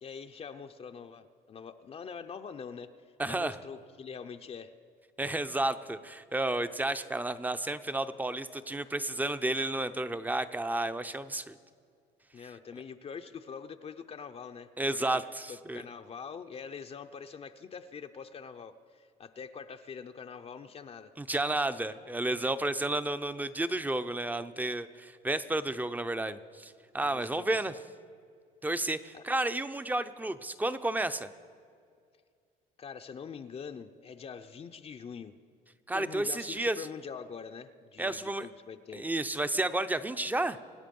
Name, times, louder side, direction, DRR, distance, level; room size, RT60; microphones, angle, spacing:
voice 1, 0.0-2.9 3.3-4.7 12.3-15.2 15.5-21.1 27.0-27.8 29.1-29.2 32.8-35.3 35.9-39.1, left 6 dB, 35° left, 7 dB, 0.6 m, -44 dB
voice 2, 3.2-3.6 5.2-11.6 14.8-15.8 21.2-27.7 28.6-31.3 35.9-36.9 38.0-38.5 38.9-40.6, right 2 dB, 10° right, 12 dB, 0.6 m, -31 dB
25.5 x 9.5 x 5.4 m, 2.2 s
cardioid pair, 110°, 17 cm